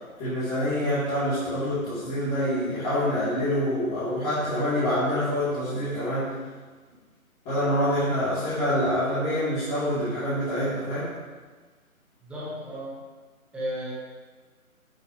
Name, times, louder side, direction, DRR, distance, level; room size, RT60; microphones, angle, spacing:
voice 1, 0.2-6.3 7.5-11.1, equal, 15° left, -15 dB, 3.6 m, -26 dB
voice 2, 12.2-13.0 13.5-13.9, equal, 5° right, -8 dB, 1.4 m, -33 dB
12.5 x 9.3 x 3.3 m, 1.4 s
figure-of-eight pair, 150°, 43 cm